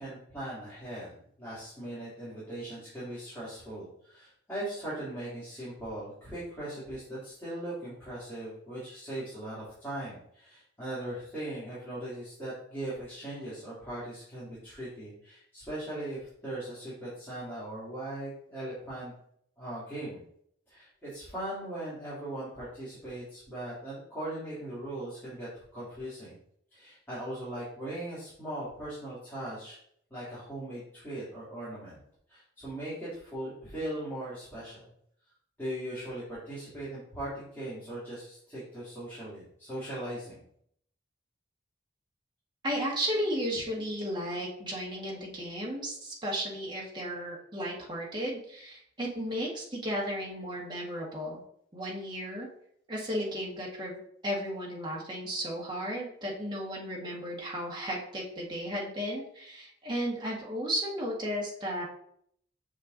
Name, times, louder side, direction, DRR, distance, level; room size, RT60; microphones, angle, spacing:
voice 1, 0.0-19.1 19.6-20.2 20.7-26.4 26.7-29.8 30.1-32.0 32.3-34.9 35.6-40.5, right 1 dB, 10° left, -11 dB, 2.9 m, -39 dB
voice 2, 42.6-51.4 51.7-52.5 52.9-61.8, equal, 25° right, -3 dB, 1.7 m, -34 dB
6.6 x 6.6 x 2.7 m, 0.67 s
head